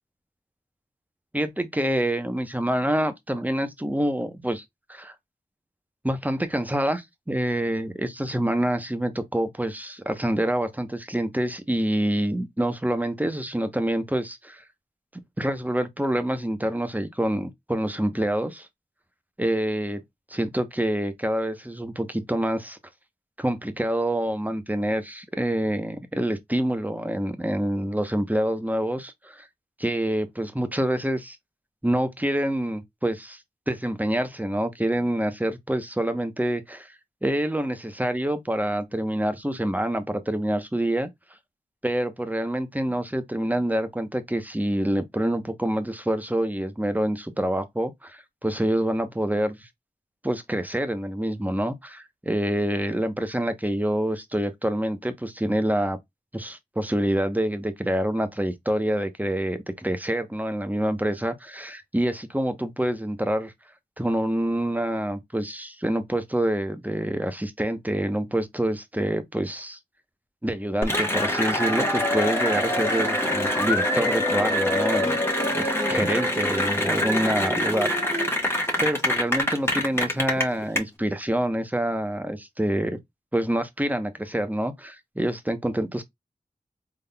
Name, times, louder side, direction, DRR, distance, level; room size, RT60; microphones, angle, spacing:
voice 1, 1.3-4.6 4.9-5.1 6.0-14.6 15.4-18.7 19.4-20.0 20.3-22.8 23.4-29.5 29.8-31.4 31.8-33.4 33.7-36.9 37.2-41.1 41.8-49.7 50.2-56.0 56.3-63.5 64.0-69.8 70.4-75.2 75.6-78.4 78.8-83.0 83.3-86.0, right 1 dB, 10° right, 0.8 m, -26 dB
Cheering / Applause, 70.8-80.8, left 1 dB, 15° left, 1.3 m, -24 dB
3.8 x 3.6 x 2.2 m
wide cardioid pair, 70°, 16 cm